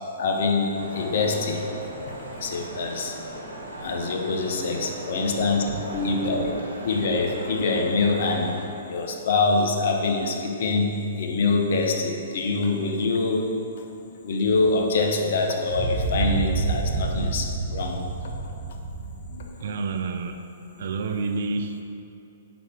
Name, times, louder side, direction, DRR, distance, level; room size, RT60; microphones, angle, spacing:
voice 1, 0.2-1.6 2.1-3.1 3.8-6.5 6.8-8.5 8.9-13.4 14.2-18.0 19.3-19.5, left 3 dB, 60° left, 2 dB, 0.8 m, -25 dB
sound 1, 0.7-8.7, right 1 dB, 85° right, 1.1 m, -38 dB
sound 2, 15.7-19.4, right 3 dB, 45° right, 1.4 m, -28 dB
voice 2, 19.6-20.4 20.8-21.8, right 3 dB, 60° right, 7 dB, 0.4 m, -28 dB
4.8 x 4.2 x 5.7 m, 2.8 s
figure-of-eight pair, 120°, 0 cm